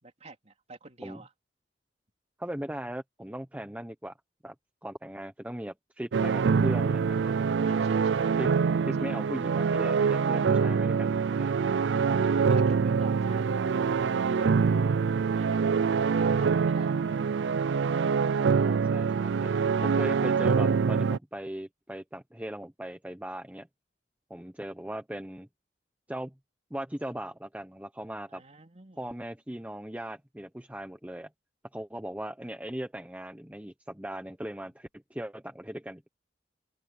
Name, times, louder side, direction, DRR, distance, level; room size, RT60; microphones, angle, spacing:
voice 1, 0.0-1.3 7.6-9.2 12.2-14.6 15.3-17.2 28.3-29.1 34.7-34.8, right 3 dB, 40° right, 3.5 m, -49 dB
voice 2, 2.4-4.1 4.4-4.5 4.8-7.3 8.4-8.5 8.9-11.8 18.3-19.5 19.8-23.7 24.3-25.5 26.1-26.3 26.7-28.4 29.0-31.3 31.7-36.1, right 1 dB, 10° right, 0.9 m, -38 dB
sound 1, 6.1-21.2, right 5 dB, 85° right, 0.4 m, -25 dB
open air
head